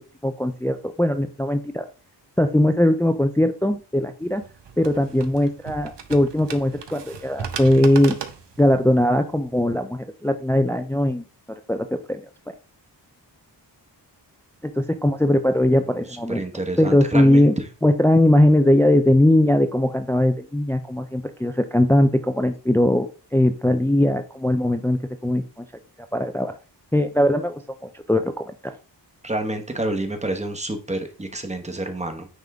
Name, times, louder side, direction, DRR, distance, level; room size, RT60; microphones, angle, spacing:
voice 1, 0.0-1.9 2.4-4.4 4.8-8.2 8.6-11.2 11.7-12.2 14.8-16.4 16.8-17.5 17.8-25.7 26.1-26.5 26.9-28.8, left 1 dB, 5° left, 8 dB, 0.4 m, -20 dB
sound 1, 4.2-9.6, right 7 dB, 75° right, 0.9 m, -37 dB
voice 2, 16.3-17.5 29.2-32.3, right 2 dB, 15° right, 5 dB, 1.1 m, -28 dB
9.3 x 3.6 x 3.6 m, 0.35 s
wide cardioid pair, 115°, 42 cm